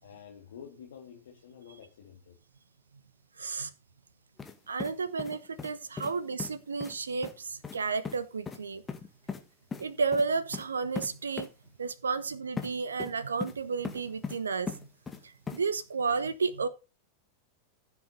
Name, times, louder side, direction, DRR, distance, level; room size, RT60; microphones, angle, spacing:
voice 1, 0.0-2.4 9.2-9.5, left 8 dB, 60° left, 2.0 m, -50 dB
voice 2, 3.4-3.7 4.7-8.8 9.8-11.5 11.8-14.9 15.2-16.7, right 4 dB, 70° right, 1.0 m, -32 dB
sound 1, 4.4-4.5 4.8-5.7 6.0-6.1 6.4-6.5 6.8-6.9 7.2-7.3 7.6-7.8 8.0-8.2 8.5-8.6 8.9-9.4 9.7-9.8 10.1-10.2 10.5-10.7 11.0-11.1 11.4-11.5 12.6-12.7 13.0-13.6 13.8-14.4 14.7-15.2 15.5-15.6, left 5 dB, 15° left, 1.8 m, -37 dB
15.0 x 7.0 x 4.0 m
figure-of-eight pair, 90°, 0 cm